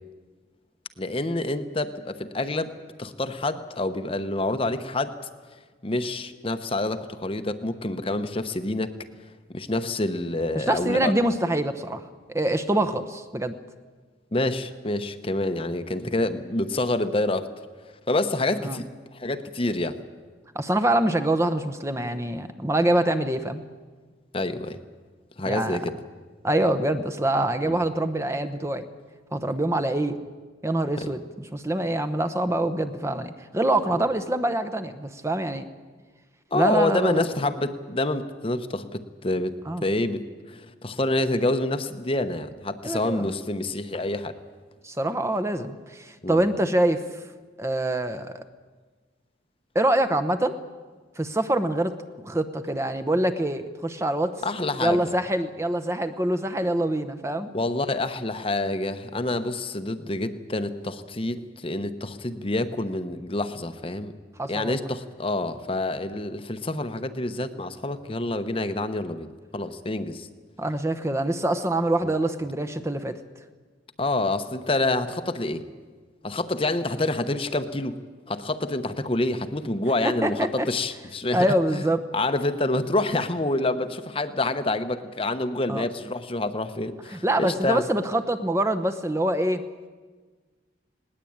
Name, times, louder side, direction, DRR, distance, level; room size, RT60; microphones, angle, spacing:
voice 1, 1.0-2.7 3.0-5.1 5.8-8.9 9.5-11.1 14.3-17.5 18.1-20.0 24.3-24.8 25.4-25.9 27.7-27.8 31.0-31.1 33.9-34.0 36.5-39.6 39.8-44.3 46.2-46.4 54.4-55.0 57.5-64.1 64.5-69.3 69.5-70.3 72.0-72.1 74.0-75.7 76.2-78.0 78.3-81.5 81.7-81.8 82.1-87.8, left 2 dB, 30° left, 9 dB, 0.9 m, -27 dB
voice 2, 10.6-12.0 12.3-13.5 18.6-18.8 20.5-23.6 25.5-25.8 26.4-28.9 29.3-30.2 30.6-31.2 31.5-35.7 36.5-37.2 39.7-39.8 42.8-43.2 44.8-47.0 47.6-48.4 49.7-50.6 51.2-51.9 52.2-54.3 54.8-57.5 64.4-64.8 70.6-73.2 80.0-80.7 81.3-82.1 85.7-85.8 87.1-89.6, right 1 dB, 15° right, 9 dB, 0.9 m, -25 dB
20.0 x 18.5 x 8.7 m, 1.4 s
head